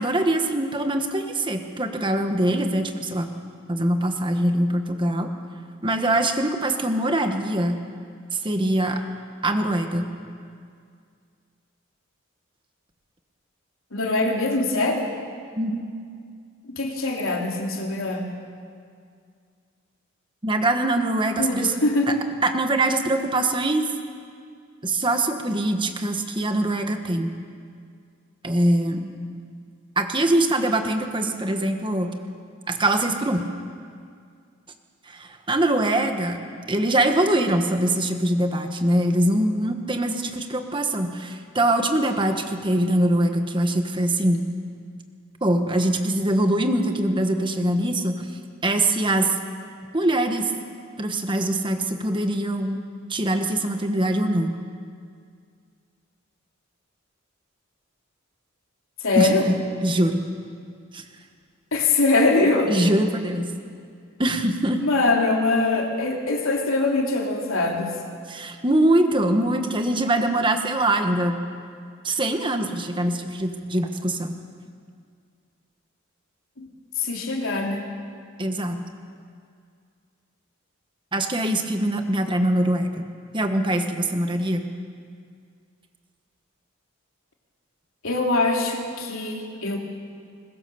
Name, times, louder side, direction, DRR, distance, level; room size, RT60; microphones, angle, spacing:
voice 1, 0.0-3.3 3.7-5.3 5.8-7.8 8.3-9.0 9.4-10.1 15.6-15.8 20.4-21.7 22.1-22.2 22.4-23.9 24.8-27.3 28.4-29.1 29.9-32.1 32.7-33.4 35.0-36.4 36.7-44.4 45.4-48.3 48.6-49.3 49.9-50.5 51.0-52.8 53.1-54.5 59.1-59.6 59.8-60.2 60.9-61.0 62.7-63.5 64.2-64.8 68.3-71.4 72.0-74.4 78.4-78.8 81.1-83.1 83.3-84.6, right 1 dB, 25° right, 6 dB, 1.5 m, -23 dB
voice 2, 13.9-15.1 16.7-18.3 21.4-22.2 59.0-59.5 61.7-62.7 64.8-67.9 76.6-76.7 77.0-77.8 88.0-89.8, left 2 dB, 80° left, 1 dB, 3.2 m, -22 dB
22.0 x 21.0 x 7.0 m, 2.2 s
head